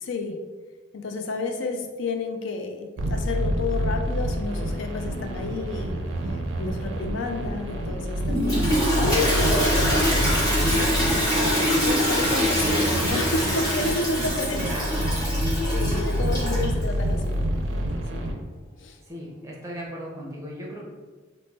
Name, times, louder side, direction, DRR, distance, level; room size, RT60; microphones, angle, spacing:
voice 1, 0.0-0.4 0.9-10.3 11.4-14.8 15.7-17.4 18.1-18.2 18.8-19.0, left 3 dB, 75° left, 4 dB, 0.4 m, -31 dB
sound 1, 3.0-18.3, equal, 70° right, 0.4 m, -27 dB
Toilet flush, 8.2-16.8, equal, 20° left, 0.9 m, -24 dB
voice 2, 11.3-11.9 14.5-15.3 16.5-16.7 17.0-17.2 19.1-20.8, equal, 15° right, -3 dB, 0.5 m, -37 dB
3.0 x 2.0 x 3.2 m, 1.3 s
head